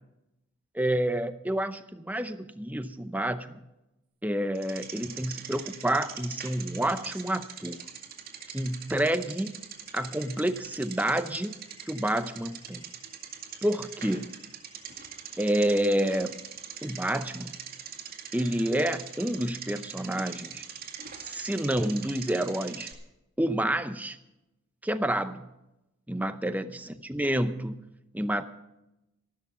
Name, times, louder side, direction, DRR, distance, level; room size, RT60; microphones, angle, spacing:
voice 1, 0.7-3.6 4.2-7.8 8.5-9.5 9.9-11.5 11.8-12.8 13.6-14.3 15.4-16.4 16.8-17.6 18.3-20.6 21.2-22.9 23.4-24.2 24.8-25.5 26.1-27.8 28.1-28.4, right 1 dB, 5° right, 10 dB, 0.6 m, -29 dB
Bicycle, 4.5-22.9, right 8 dB, 40° right, 2.0 m, -43 dB
13.5 x 12.5 x 5.7 m, 0.92 s
head